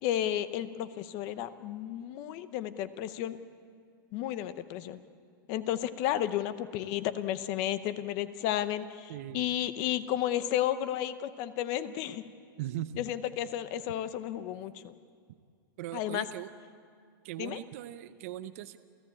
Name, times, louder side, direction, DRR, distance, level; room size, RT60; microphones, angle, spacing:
voice 1, 0.0-3.4 4.1-5.0 5.5-12.2 13.0-14.9 15.9-16.3 17.4-17.6, left 12 dB, 30° left, 13 dB, 0.7 m, -32 dB
voice 2, 9.1-9.6 12.6-13.0 15.8-16.5 17.2-18.8, right 13 dB, 40° right, 11 dB, 0.6 m, -39 dB
29.0 x 14.5 x 8.7 m, 2.2 s
supercardioid pair, 175°, 12 cm